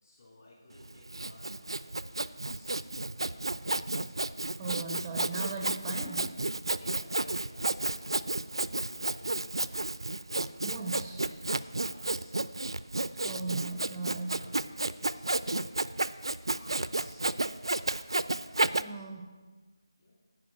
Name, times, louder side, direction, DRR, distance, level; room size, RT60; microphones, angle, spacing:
voice 1, 0.0-2.8 3.2-4.1 6.8-9.7 10.3-10.5 10.8-12.4 14.3-15.7 16.6-17.3 18.9-19.2 20.0-20.2, left 1 dB, 40° left, -5 dB, 3.4 m, -56 dB
Sawing, 0.8-18.8, right 2 dB, 75° right, 0.3 m, -32 dB
voice 2, 4.6-6.4 10.6-11.3 13.2-14.4 18.8-19.4, right 4 dB, 10° right, 3 dB, 0.4 m, -38 dB
9.8 x 5.1 x 7.3 m, 1.4 s
figure-of-eight pair, 165°, 3 cm